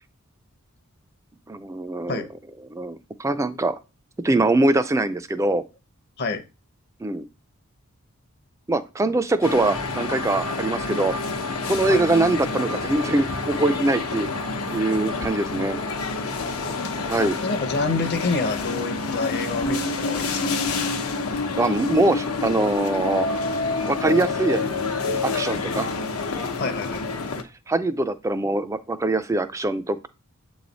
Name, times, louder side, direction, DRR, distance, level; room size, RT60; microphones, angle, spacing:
voice 1, 1.5-2.3 2.7-3.8 4.2-5.7 7.0-7.3 8.7-11.2 11.7-14.3 14.7-15.8 17.1-17.4 21.6-23.3 23.9-24.6 25.2-25.9 27.7-30.1, right 2 dB, 15° right, 0.3 m, -23 dB
sound 1, 9.4-27.4, left 3 dB, 90° left, 0.8 m, -28 dB
voice 2, 16.4-17.1 17.4-20.6 26.6-27.0, left 3 dB, 50° left, 0.7 m, -28 dB
7.5 x 3.2 x 4.0 m
head